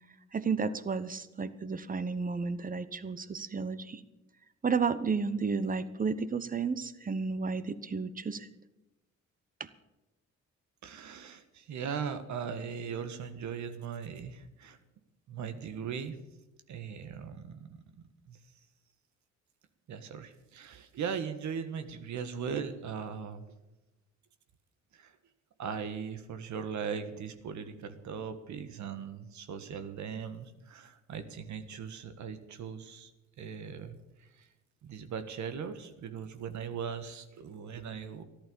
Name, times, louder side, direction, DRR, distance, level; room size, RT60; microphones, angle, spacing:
voice 1, 0.3-4.0 4.6-8.5 9.6-9.7, right 5 dB, 30° right, 14 dB, 1.0 m, -32 dB
voice 2, 10.8-14.8 15.3-16.1 16.7-17.8 18.3-18.4 19.9-23.5 24.9-25.1 25.6-33.1 33.4-34.5 34.8-38.2, right 7 dB, 70° right, 10 dB, 1.5 m, -39 dB
13.5 x 11.5 x 6.9 m, 1.0 s
cardioid pair, 90°, 30 cm